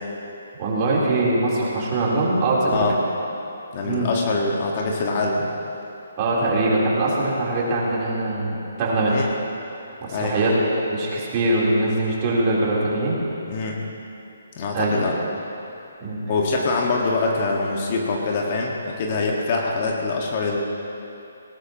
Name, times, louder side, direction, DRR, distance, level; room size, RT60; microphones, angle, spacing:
voice 1, 0.6-2.9 3.8-4.1 6.2-9.1 10.1-10.6 10.9-13.2 14.7-14.9 16.0-16.2, right 2 dB, 30° right, -6 dB, 4.0 m, -22 dB
voice 2, 3.7-5.5 9.1-9.3 10.1-10.4 13.5-13.8 14.6-15.2 16.3-20.6, left 3 dB, 40° left, -1 dB, 1.8 m, -24 dB
19.0 x 18.5 x 3.1 m, 2.8 s
figure-of-eight pair, 140°, 0 cm